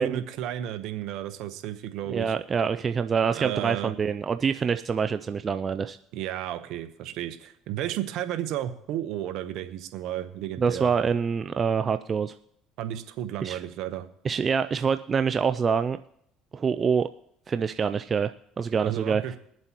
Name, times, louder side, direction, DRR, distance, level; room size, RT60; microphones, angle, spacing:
voice 1, 0.0-2.3 3.3-3.9 6.1-10.9 12.8-14.1 18.8-19.4, right 12 dB, 70° right, 10 dB, 1.0 m, -33 dB
voice 2, 2.1-6.0 10.6-12.3 13.4-13.6 14.2-16.0 16.5-17.1 17.5-19.2, right 6 dB, 35° right, 10 dB, 0.4 m, -26 dB
22.0 x 7.7 x 3.0 m, 0.74 s
supercardioid pair, 85°, 0 cm